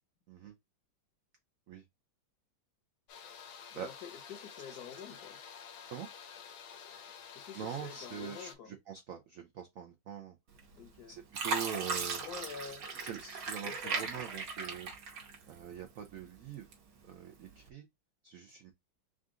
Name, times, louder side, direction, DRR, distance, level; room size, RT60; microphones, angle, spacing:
sound 1, 3.1-8.5, left 7 dB, 90° left, 1.6 m, -50 dB
voice 1, 3.7-5.4 7.3-8.8 10.8-11.2 11.8-11.9 12.1-12.9 13.6-14.2, left 7 dB, 65° left, 1.0 m, -48 dB
voice 2, 7.5-10.4 11.1-12.2 13.1-14.9 15.5-16.7 17.0-17.9 18.2-18.7, right 8 dB, 90° right, 0.7 m, -43 dB
Fill (with liquid), 10.6-11.0 11.3-15.7 16.2-17.0 17.5-17.7, right 4 dB, 60° right, 1.5 m, -37 dB
3.9 x 2.5 x 3.6 m
omnidirectional pair, 2.2 m